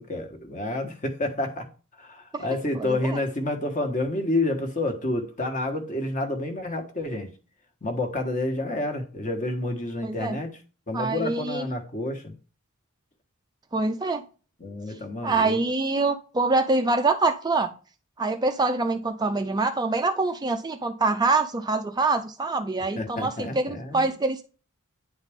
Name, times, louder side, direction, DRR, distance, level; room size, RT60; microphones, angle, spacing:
voice 1, 0.0-1.7 2.0-7.3 7.8-10.6 10.9-12.3 14.6-15.6 22.9-24.2, left 2 dB, 35° left, 1.3 m, -29 dB
voice 2, 2.8-3.2 10.0-10.4 10.9-11.7 13.7-14.2 15.2-17.7 18.2-24.4, right 3 dB, 20° right, 0.4 m, -25 dB
9.8 x 4.1 x 3.5 m
head